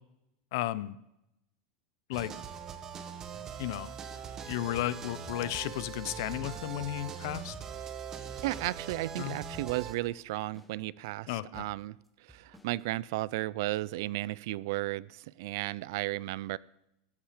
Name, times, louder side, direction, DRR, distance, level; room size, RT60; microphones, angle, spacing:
voice 1, 0.5-1.0 2.1-2.3 3.6-3.9 4.4-7.5 9.2-9.4 11.3-11.6, left 15 dB, 60° left, 0.6 m, -34 dB
sound 1, 2.1-9.9, right 7 dB, 25° right, 1.0 m, -41 dB
sound 2, 6.5-8.8 9.0-9.1 9.5-10.1 10.5-11.1 11.5-13.3, left 1 dB, ahead, 0.9 m, -57 dB
voice 2, 8.4-12.0 12.3-16.6, right 18 dB, 65° right, 0.4 m, -34 dB
13.0 x 8.7 x 5.0 m
supercardioid pair, 165°, 2 cm